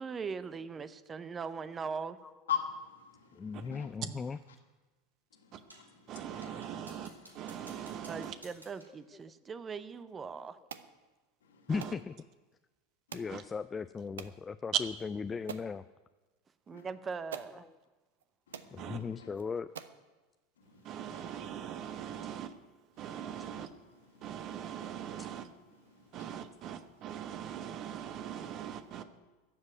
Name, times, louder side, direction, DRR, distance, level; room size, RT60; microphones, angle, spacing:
voice 1, 0.0-2.2 4.0-4.2 8.1-10.6 16.7-17.6, right 5 dB, 25° right, 14 dB, 0.6 m, -40 dB
voice 2, 2.5-3.9 5.3-7.7 11.4-11.7 13.1-13.4 16.7-16.9 18.5-19.3 20.6-22.3 23.0-23.2 23.6-23.7 23.9-24.5 25.0-25.3 25.8-26.4, left 8 dB, 70° left, 2 dB, 2.2 m, -44 dB
voice 3, 3.4-4.4 11.7-12.1 13.1-14.9 15.3-15.8 18.7-19.7, left 5 dB, 20° left, 12 dB, 0.4 m, -37 dB
sound 1, 5.7-6.0 6.4-9.0, right 1 dB, 85° right, 2.2 m, -56 dB
voice 4, 6.1-8.4 11.7-11.9 13.3-13.4 18.8-19.0 20.8-22.6 23.0-23.7 24.2-25.5 26.1-29.0, right 9 dB, 40° right, 10 dB, 1.1 m, -41 dB
sound 2, 10.7-10.9 11.8-12.0 13.1-13.4 14.2-14.4 15.0-15.1 15.5-15.7 16.8-16.9 17.3-17.6 18.2-18.3 18.5-18.7 19.3-19.4 19.8-20.0, right 7 dB, 70° right, 0.7 m, -45 dB
14.0 x 7.5 x 9.1 m, 1.2 s
figure-of-eight pair, 80°, 0 cm